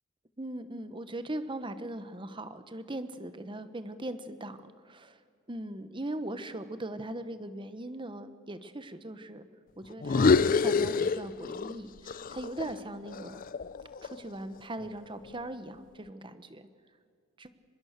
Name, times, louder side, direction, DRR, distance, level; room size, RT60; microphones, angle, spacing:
voice 1, 0.4-5.2 5.5-9.5 9.8-13.4 14.0-16.7 17.4-17.5, right 1 dB, 25° right, 11 dB, 1.1 m, -40 dB
sound 1, 10.0-11.8 12.1-14.3, left 4 dB, 45° left, 0.5 m, -27 dB
24.0 x 21.5 x 6.7 m, 2.1 s
head